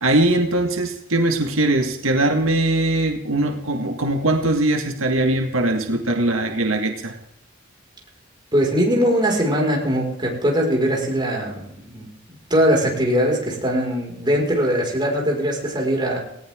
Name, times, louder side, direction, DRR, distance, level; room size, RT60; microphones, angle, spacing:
voice 1, 0.0-7.2, right 2 dB, 85° right, 4 dB, 1.9 m, -21 dB
voice 2, 8.5-12.1 12.5-16.2, equal, 25° right, -1 dB, 5.5 m, -21 dB
18.5 x 18.0 x 3.8 m, 0.78 s
head